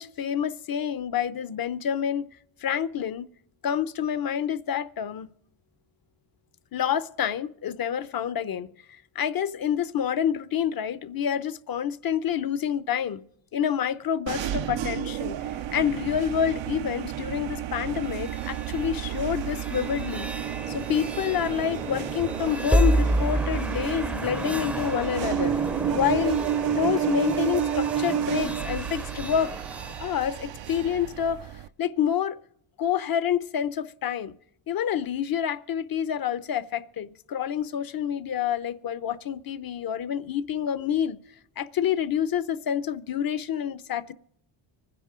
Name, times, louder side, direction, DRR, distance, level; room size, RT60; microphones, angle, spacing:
voice 1, 0.0-2.3 2.6-3.3 3.6-5.3 6.7-13.2 13.5-15.4 15.7-20.3 20.7-25.5 25.9-26.4 26.6-29.5 30.0-32.4 32.8-34.3 34.7-41.2 41.6-44.1, left 9 dB, 50° left, 0.8 m, -28 dB
sound 1, 14.3-31.7, right 10 dB, 65° right, 0.7 m, -31 dB
sound 2, 18.0-30.9, right 1 dB, 5° right, 0.7 m, -31 dB
25.0 x 10.0 x 3.8 m
cardioid pair, 90°, 47 cm